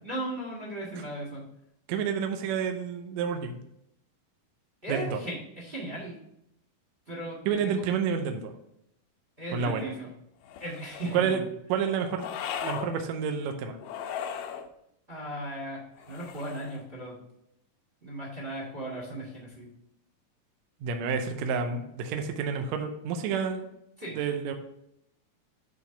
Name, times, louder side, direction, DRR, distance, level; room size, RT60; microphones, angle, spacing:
voice 1, 0.0-1.4 4.8-6.2 7.1-7.8 9.4-10.1 10.6-11.4 15.1-15.8 16.1-17.1 18.0-19.7 24.0-24.2, right 1 dB, 25° right, -2 dB, 1.4 m, -36 dB
voice 2, 1.9-3.6 4.9-5.2 7.4-8.5 9.5-9.9 11.1-11.4 11.7-12.3 12.6-13.8 20.8-23.7 24.1-24.5, right 6 dB, 75° right, 5 dB, 1.7 m, -29 dB
sound 1, 10.4-11.3 12.2-12.9 13.8-14.7 16.0-16.8, left 8 dB, 80° left, 2.1 m, -37 dB
8.6 x 3.5 x 4.5 m, 0.79 s
omnidirectional pair, 4.0 m